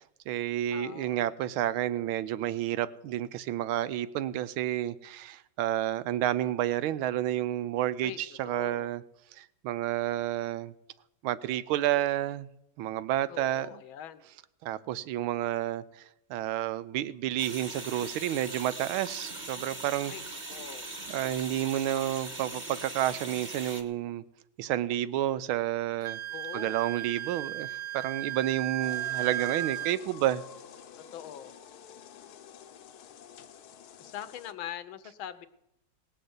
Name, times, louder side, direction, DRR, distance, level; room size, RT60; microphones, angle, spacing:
voice 1, 0.0-9.0 9.3-10.7 11.2-12.5 12.8-13.7 14.6-15.8 16.3-20.1 21.1-24.2 24.6-26.2 26.5-30.4, right 12 dB, 85° right, 1.5 m, -30 dB
voice 2, 0.7-1.3 8.0-8.9 13.3-14.3 20.1-20.9 26.3-26.8 31.0-31.6 34.0-35.5, left 10 dB, 80° left, 1.6 m, -43 dB
sound 1, 17.4-23.8, right 2 dB, 25° right, 1.2 m, -40 dB
Wind instrument woodwind instrument, 26.0-30.0, right 15 dB, 60° right, 0.7 m, -35 dB
sound 2, 28.8-34.5, left 8 dB, 60° left, 1.1 m, -49 dB
18.5 x 6.6 x 8.0 m
omnidirectional pair, 2.2 m